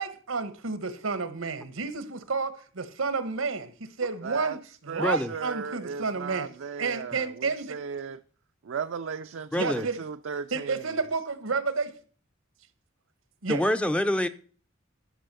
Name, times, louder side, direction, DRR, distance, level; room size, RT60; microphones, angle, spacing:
voice 1, 0.0-3.7 4.0-6.5 6.8-7.7 9.5-10.0 10.5-11.9 13.4-13.6, right 4 dB, 90° right, 1.1 m, -30 dB
voice 2, 4.2-4.6 4.9-8.2 8.6-10.9, right 6 dB, 70° right, 0.4 m, -36 dB
voice 3, 5.0-5.3 9.5-9.9 13.5-14.3, left 1 dB, 5° left, 0.4 m, -26 dB
11.0 x 5.4 x 6.7 m
head